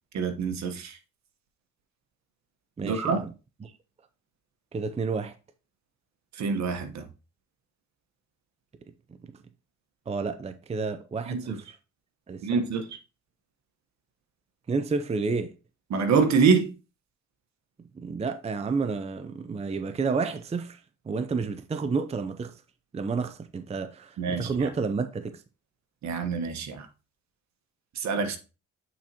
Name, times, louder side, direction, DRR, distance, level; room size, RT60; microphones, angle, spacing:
voice 1, 0.1-1.0 2.8-3.2 6.4-7.0 11.3-11.6 12.4-12.8 15.9-16.7 24.2-24.7 26.0-26.9 27.9-28.4, right 5 dB, 65° right, 1.2 m, -25 dB
voice 2, 2.8-3.3 3.6-3.7 4.7-5.3 10.1-11.7 12.3-12.6 14.7-15.5 17.9-22.6 22.9-25.4, right 4 dB, 20° right, 0.5 m, -30 dB
8.5 x 4.4 x 2.8 m
cardioid pair, 90°, 30 cm